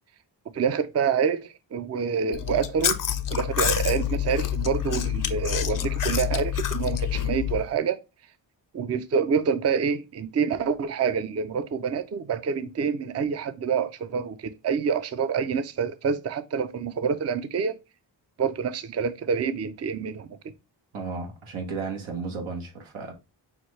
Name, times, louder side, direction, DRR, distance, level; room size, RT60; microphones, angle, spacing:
voice 1, 0.5-3.0 3.3-8.0 8.7-17.8 18.4-20.3, right 6 dB, 35° right, 0.5 m, -27 dB
Chewing mastication, 2.3-7.7, left 10 dB, 45° left, 0.6 m, -27 dB
voice 2, 20.9-23.1, right 4 dB, 90° right, 1.1 m, -33 dB
5.9 x 2.3 x 3.1 m
cardioid pair, 55°, 47 cm